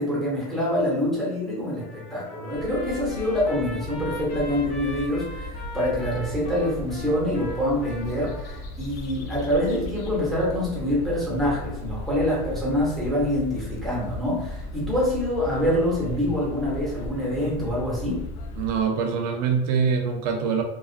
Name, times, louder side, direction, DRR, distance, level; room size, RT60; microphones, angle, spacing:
voice 1, 0.0-18.2, left 1 dB, ahead, -6 dB, 0.8 m, -26 dB
Trumpet, 1.8-8.6, left 1 dB, 35° left, 0.9 m, -41 dB
sound 1, 2.5-18.8, left 1 dB, 75° left, 0.4 m, -36 dB
voice 2, 18.6-20.6, right 6 dB, 80° right, 4 dB, 0.5 m, -24 dB
2.4 x 2.2 x 2.4 m, 0.90 s
cardioid pair, 155°, 20 cm